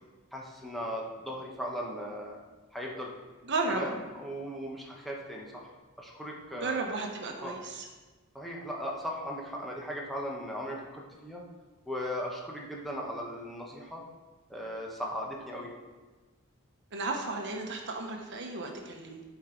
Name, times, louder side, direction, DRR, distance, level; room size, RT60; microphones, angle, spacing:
voice 1, 0.3-2.4 2.7-3.1 3.7-5.7 6.0-6.8 7.4-7.5 8.3-11.4 11.9-14.0 14.5-15.7, equal, ahead, -3 dB, 1.0 m, -37 dB
voice 2, 3.4-3.8 6.6-7.9 16.9-19.2, right 3 dB, 55° right, 2 dB, 1.0 m, -34 dB
11.0 x 4.6 x 3.8 m, 1.2 s
head